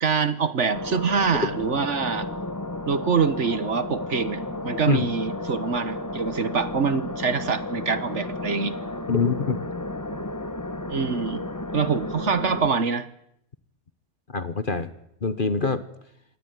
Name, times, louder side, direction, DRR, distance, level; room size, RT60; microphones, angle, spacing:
voice 1, 0.0-2.3 2.9-8.7 10.9-11.4 11.7-13.1, right 5 dB, 50° right, 15 dB, 1.4 m, -25 dB
sound 1, 0.7-12.7, left 2 dB, 15° left, 1.2 m, -33 dB
voice 2, 9.1-9.6 14.3-14.9 15.2-15.8, left 4 dB, 35° left, 13 dB, 1.2 m, -24 dB
26.0 x 19.0 x 9.5 m, 0.76 s
omnidirectional pair, 1.6 m